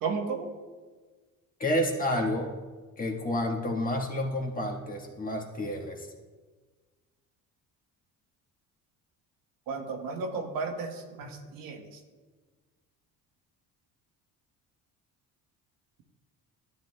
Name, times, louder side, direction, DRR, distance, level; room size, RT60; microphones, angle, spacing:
voice 1, 0.0-0.5 9.7-11.8, right 4 dB, 75° right, 3 dB, 1.1 m, -33 dB
voice 2, 1.6-2.5 3.0-6.1 11.2-11.3, left 1 dB, 25° left, 1 dB, 1.3 m, -30 dB
11.5 x 7.6 x 2.2 m, 1.4 s
cardioid pair, 95°, 35 cm